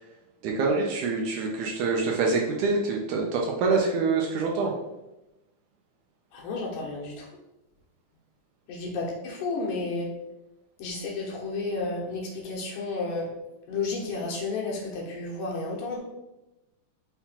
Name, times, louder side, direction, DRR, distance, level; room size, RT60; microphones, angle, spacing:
voice 1, 0.4-4.7, right 4 dB, 75° right, -1 dB, 1.9 m, -25 dB
voice 2, 6.3-7.3 8.7-10.1 10.8-13.3 13.7-16.0, left 3 dB, 70° left, -2 dB, 2.6 m, -32 dB
5.9 x 3.9 x 4.2 m, 0.98 s
omnidirectional pair, 4.0 m